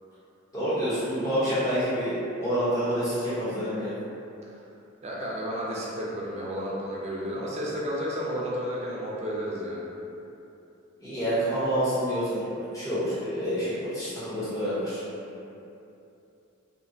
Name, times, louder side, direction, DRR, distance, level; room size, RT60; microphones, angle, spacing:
voice 1, 0.5-3.9 11.0-15.0, equal, 15° left, -12 dB, 0.8 m, -28 dB
voice 2, 5.0-9.8, equal, 30° right, -5 dB, 0.4 m, -32 dB
2.7 x 2.1 x 2.6 m, 2.8 s
head